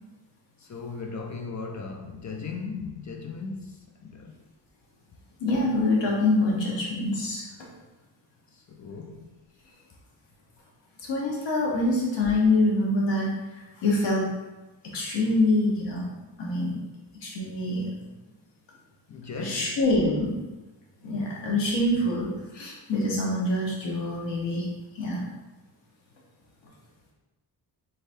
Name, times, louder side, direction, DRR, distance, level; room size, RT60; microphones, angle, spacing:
voice 1, 0.6-4.4 8.5-9.4 19.1-19.8, left 4 dB, 45° left, 3 dB, 0.6 m, -37 dB
voice 2, 5.4-7.4 11.1-13.3 13.8-14.3 14.9-16.1 16.4-16.8 17.2-17.9 19.4-20.4 21.0-22.3 22.5-24.7 24.9-25.2, left 2 dB, 90° left, -3 dB, 1.2 m, -25 dB
4.1 x 3.7 x 2.7 m, 1.1 s
cardioid pair, 85°, 42 cm